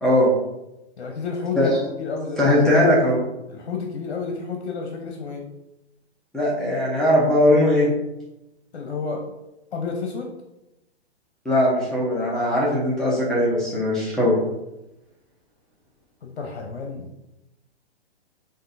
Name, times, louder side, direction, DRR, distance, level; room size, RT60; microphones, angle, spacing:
voice 1, 0.0-0.3 1.6-1.7 2.4-3.2 6.3-7.9 11.4-14.4, left 1 dB, ahead, -8 dB, 0.6 m, -19 dB
voice 2, 1.0-2.4 3.5-5.4 8.7-9.2 9.7-10.3 16.2-17.1, left 5 dB, 60° left, 2 dB, 0.9 m, -30 dB
7.4 x 2.7 x 2.6 m, 0.94 s
figure-of-eight pair, 130°, 33 cm